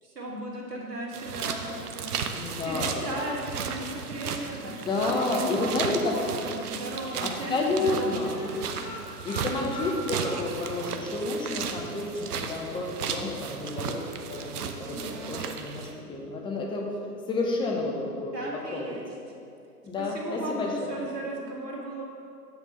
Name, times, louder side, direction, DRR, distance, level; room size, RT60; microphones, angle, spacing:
voice 1, 0.0-2.2 2.7-5.7 6.1-8.6 9.0-9.3 14.9-15.4 18.3-19.0 20.0-22.0, right 1 dB, 85° right, -3 dB, 2.0 m, -36 dB
sound 1, 1.1-15.9, right 6 dB, 70° right, 0.8 m, -35 dB
voice 2, 2.3-3.2 4.6-6.1 7.2-8.5 9.2-16.9 17.3-18.3 18.7-19.0 19.8-20.9, left 2 dB, 10° left, 0 dB, 0.8 m, -30 dB
sound 2, 6.9-7.1 7.4-7.6 7.8-10.9 11.2-11.3 11.7-11.8, left 1 dB, 90° left, 1.7 m, -42 dB
8.5 x 4.4 x 5.5 m, 2.5 s
hypercardioid pair, 120°, 47 cm